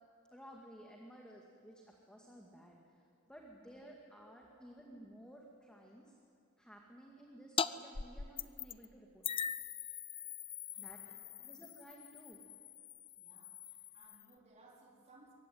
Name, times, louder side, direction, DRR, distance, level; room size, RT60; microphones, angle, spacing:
voice 1, 0.3-6.1 6.6-9.3 10.8-11.0 11.5-12.4, equal, 5° left, -1 dB, 2.1 m, -56 dB
sound 1, 7.6-7.7 7.9-8.9 9.2-14.3, left 7 dB, 25° left, 0.5 m, -42 dB
voice 2, 10.7-11.6 13.1-15.3, right 2 dB, 30° right, -2 dB, 3.8 m, -64 dB
23.5 x 23.0 x 9.4 m, 2.4 s
head